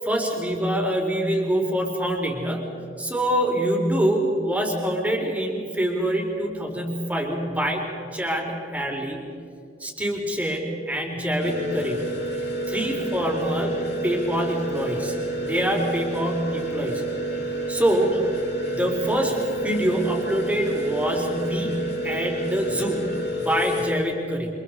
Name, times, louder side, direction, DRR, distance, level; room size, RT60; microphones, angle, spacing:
voice 1, 0.0-2.6 3.0-9.3 9.8-12.0 12.7-15.2 15.4-17.0 17.7-18.3 18.7-24.5, equal, 10° right, 0 dB, 4.4 m, -25 dB
sound 1, 11.4-24.0, right 1 dB, 65° left, 5.3 m, -29 dB
29.5 x 26.5 x 4.9 m, 2.7 s
head